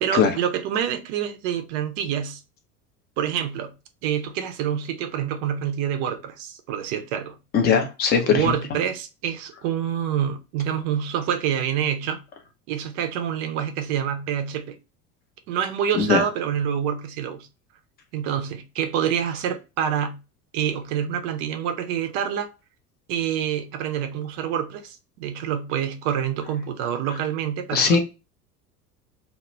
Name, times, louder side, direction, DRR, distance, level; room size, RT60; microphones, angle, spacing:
voice 1, 0.0-2.4 3.2-3.7 4.0-7.4 8.2-12.2 12.7-14.8 15.5-17.5 18.1-20.2 20.5-22.5 23.1-28.0, right 9 dB, 40° right, 0.5 m, -27 dB
voice 2, 7.5-8.5 15.9-16.2 27.7-28.0, left 6 dB, 20° left, 0.5 m, -19 dB
2.2 x 2.1 x 3.0 m
figure-of-eight pair, 70°, 47 cm